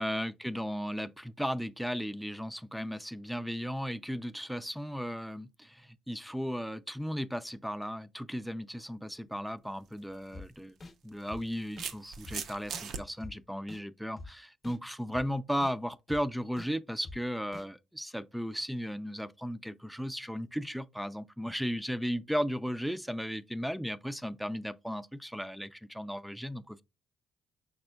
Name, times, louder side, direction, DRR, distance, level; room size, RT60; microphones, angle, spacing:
voice 1, 0.0-10.8 11.0-26.8, equal, ahead, 0.3 m, -35 dB
sound 1, 9.8-10.0 11.1-13.0, right 7 dB, 75° right, 0.6 m, -39 dB
sound 2, 10.3-10.5 10.8-10.9 11.3-11.4 11.8-11.9 12.2-12.4 12.7-12.9 13.2-13.3 13.7-13.8 14.2-14.3 14.6-14.8 15.1-15.3 15.6-15.7 16.1-16.2 16.6-16.7 17.0-17.2 17.5-17.7, left 2 dB, 35° left, 0.7 m, -45 dB
5.2 x 4.2 x 2.2 m
cardioid pair, 90°, 0 cm